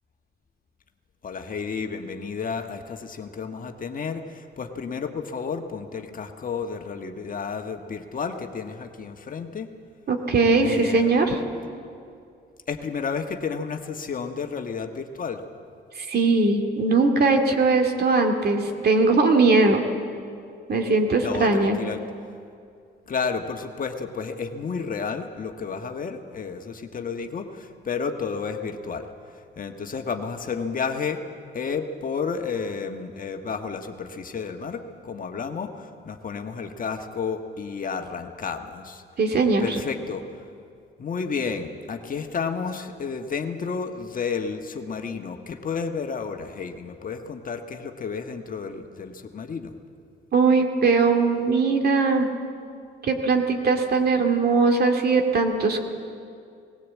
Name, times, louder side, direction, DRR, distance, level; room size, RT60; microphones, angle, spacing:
voice 1, 1.2-9.7 10.6-11.2 12.7-15.4 21.2-22.0 23.1-29.1 29.6-31.2 31.5-39.0 39.6-40.4 41.0-49.7, left 5 dB, 45° left, 6 dB, 1.4 m, -31 dB
voice 2, 10.1-11.4 16.0-19.8 20.7-21.8 39.2-39.8 50.3-52.3 53.0-55.8, right 3 dB, 55° right, 4 dB, 2.3 m, -20 dB
19.0 x 16.5 x 8.3 m, 2.4 s
cardioid pair, 90°, 20 cm